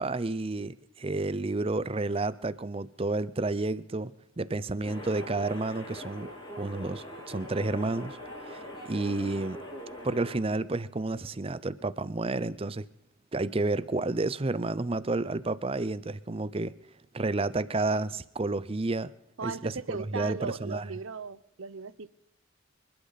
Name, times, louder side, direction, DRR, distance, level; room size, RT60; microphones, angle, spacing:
voice 1, 0.0-4.1 4.4-6.3 6.6-8.2 8.5-9.6 10.0-12.9 13.3-16.7 17.1-19.1 19.4-20.8, right 2 dB, 30° right, 0.5 m, -30 dB
sound 1, 4.8-10.4, equal, 25° left, 5.1 m, -42 dB
voice 2, 19.4-22.1, right 5 dB, 80° right, 0.8 m, -38 dB
26.5 x 12.0 x 4.1 m
head